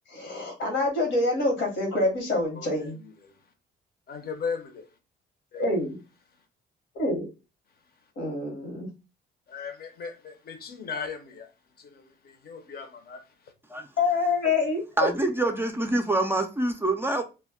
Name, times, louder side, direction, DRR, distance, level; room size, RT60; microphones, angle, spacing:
voice 1, 0.1-3.0 5.5-6.0 6.9-7.3 8.2-8.9 14.0-15.1, left 2 dB, 75° left, 1.1 m, -26 dB
voice 2, 2.5-3.4 4.1-4.9 5.5-5.7 9.5-11.5 11.8-13.5, left 5 dB, 50° left, 0.7 m, -38 dB
voice 3, 15.0-17.2, right 2 dB, 10° right, 0.4 m, -26 dB
2.2 x 2.1 x 3.4 m
cardioid pair, 90°, 20 cm